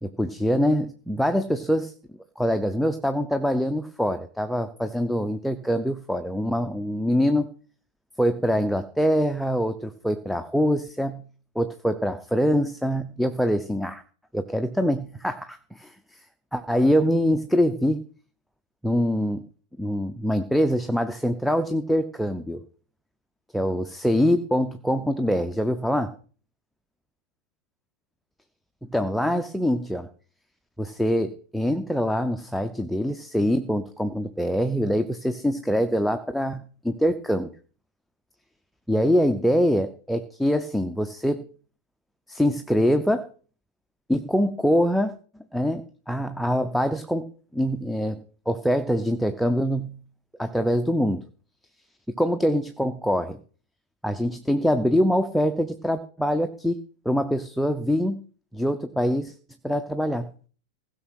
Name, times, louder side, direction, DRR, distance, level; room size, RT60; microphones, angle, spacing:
voice 1, 0.0-1.9 2.4-7.5 8.2-11.3 11.5-14.0 14.3-15.9 16.5-18.0 18.8-19.5 19.8-22.6 23.5-26.1 28.9-30.1 30.8-37.5 38.9-41.4 42.3-43.3 44.1-45.1 45.5-50.0 50.4-51.2 52.1-53.4 54.0-56.8 57.0-58.2 58.5-59.3 59.6-60.3, equal, ahead, 8 dB, 0.8 m, -24 dB
16.0 x 6.1 x 6.3 m, 0.41 s
figure-of-eight pair, 90°, 0 cm